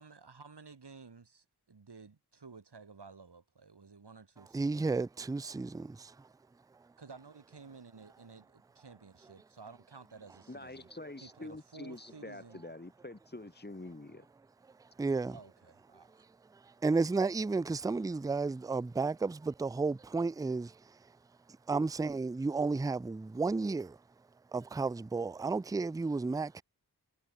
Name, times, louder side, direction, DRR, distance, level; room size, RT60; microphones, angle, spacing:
voice 1, 0.0-4.9 7.0-10.9 11.2-12.6 15.3-16.2, right 4 dB, 80° right, 1.7 m, -53 dB
voice 2, 4.5-6.1 15.0-15.3 16.8-20.7 21.7-24.0 24.5-26.6, right 3 dB, 10° right, 0.3 m, -32 dB
voice 3, 10.5-14.3, left 2 dB, 25° left, 1.4 m, -46 dB
wide cardioid pair, 40°, 40 cm